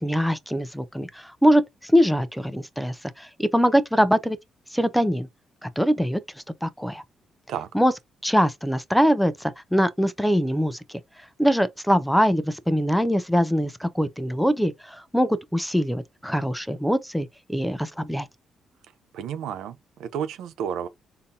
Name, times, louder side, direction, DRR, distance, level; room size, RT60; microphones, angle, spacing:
voice 1, 0.0-4.4 4.7-5.3 5.6-6.2 6.6-7.0 7.7-7.9 8.2-10.8 11.4-18.3, equal, ahead, 0.5 m, -23 dB
voice 2, 19.1-20.9, right 8 dB, 85° right, 0.5 m, -31 dB
3.8 x 2.7 x 2.7 m
cardioid pair, 85°, 0 cm